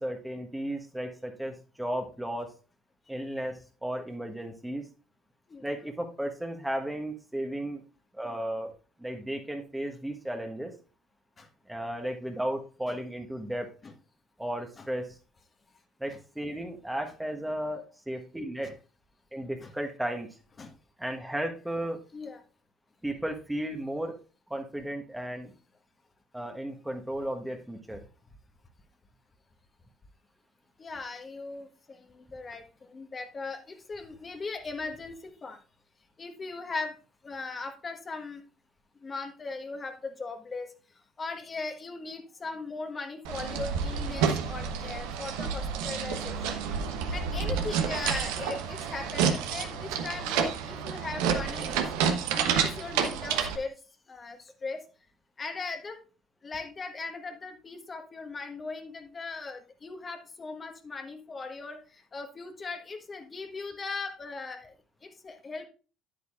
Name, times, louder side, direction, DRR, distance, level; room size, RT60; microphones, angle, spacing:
voice 1, 0.0-2.5 3.1-4.9 5.6-7.8 8.1-8.7 9.0-10.7 11.7-13.7 14.4-15.2 16.0-18.8 19.3-20.3 21.0-22.0 23.0-24.2 24.5-25.5 26.3-28.0, right 1 dB, 5° right, 3 dB, 1.3 m, -34 dB
voice 2, 30.8-35.6 36.2-37.0 37.2-38.4 39.0-53.7 54.1-54.8 55.4-56.0 56.4-64.7 65.0-65.7, left 3 dB, 35° left, 5 dB, 1.4 m, -39 dB
sound 1, 43.2-53.6, right 7 dB, 70° right, 1.0 m, -29 dB
10.0 x 8.8 x 2.5 m, 0.36 s
hypercardioid pair, 55°, 0 cm